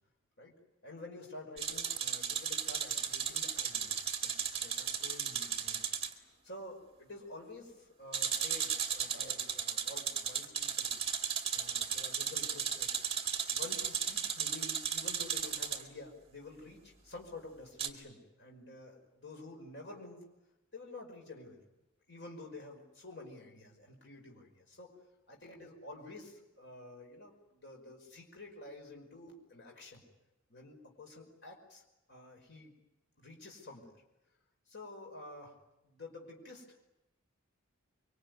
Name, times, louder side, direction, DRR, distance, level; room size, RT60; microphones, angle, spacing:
voice 1, 0.8-5.9 6.2-11.0 11.5-12.9 13.5-20.2 20.7-21.6 22.1-24.9 25.3-30.0 30.5-31.8 32.1-32.8 33.2-34.0 34.7-35.6 35.8-36.8, left 2 dB, 55° left, 1 dB, 5.4 m, -50 dB
sound 1, 1.6-6.1 8.1-15.8 17.8-17.9, right 8 dB, 25° right, 2.2 m, -35 dB
25.0 x 24.0 x 9.6 m, 0.95 s
head